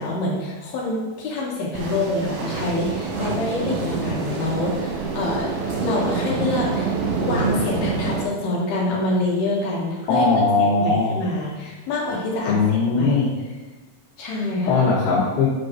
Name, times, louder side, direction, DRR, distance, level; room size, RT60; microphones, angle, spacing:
voice 1, 0.0-5.5 5.8-6.9 7.2-10.3 10.6-13.3 14.2-14.8, left 2 dB, 70° left, -5 dB, 2.3 m, -26 dB
sound 1, 1.7-8.3, right 4 dB, 75° right, 3.3 m, -26 dB
voice 2, 10.1-11.2 12.5-13.3 14.7-15.5, left 4 dB, 85° left, -6 dB, 4.4 m, -19 dB
8.3 x 5.2 x 2.6 m, 1.3 s
omnidirectional pair, 5.8 m